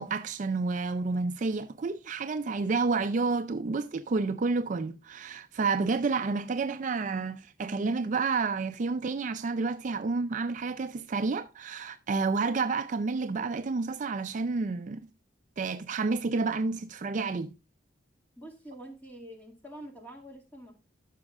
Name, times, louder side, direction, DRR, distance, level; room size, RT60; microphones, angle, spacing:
voice 1, 0.0-15.0 15.6-17.5, right 4 dB, 40° right, 0.4 m, -30 dB
voice 2, 18.4-20.8, right 1 dB, 10° left, 2.1 m, -46 dB
14.5 x 6.3 x 2.4 m
head